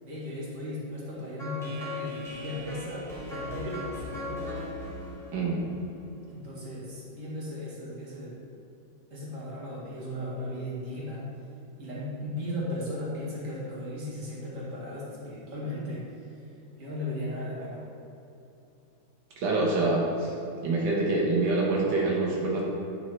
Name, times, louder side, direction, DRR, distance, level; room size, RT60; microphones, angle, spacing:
voice 1, 0.0-4.5 6.3-8.4 9.1-11.3 11.8-16.5 16.8-17.9, left 1 dB, 40° right, -7 dB, 2.3 m, -36 dB
sound 1, 1.4-6.4, left 2 dB, ahead, 1.1 m, -39 dB
voice 2, 5.3-5.6 19.4-20.4 20.6-22.6, right 2 dB, 85° right, -3 dB, 2.0 m, -26 dB
9.4 x 4.6 x 4.4 m, 2.9 s
omnidirectional pair, 2.1 m